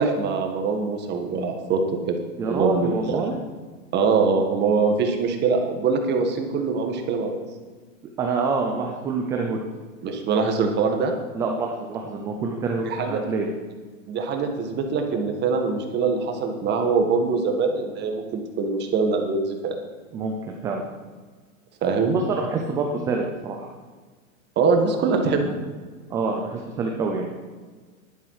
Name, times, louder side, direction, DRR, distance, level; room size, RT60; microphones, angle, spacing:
voice 1, 0.0-1.8 2.1-2.2 2.5-3.2 3.9-7.4 10.0-11.1 12.8-13.2 14.1-19.8 21.8-22.2 24.5-25.6, right 4 dB, 25° right, 4 dB, 1.6 m, -23 dB
voice 2, 2.4-3.4 8.2-9.6 11.3-13.5 20.1-20.8 22.1-23.7 26.1-27.3, right 4 dB, 10° right, 1 dB, 0.3 m, -26 dB
11.0 x 9.9 x 4.8 m, 1.4 s
hypercardioid pair, 135°, 40 cm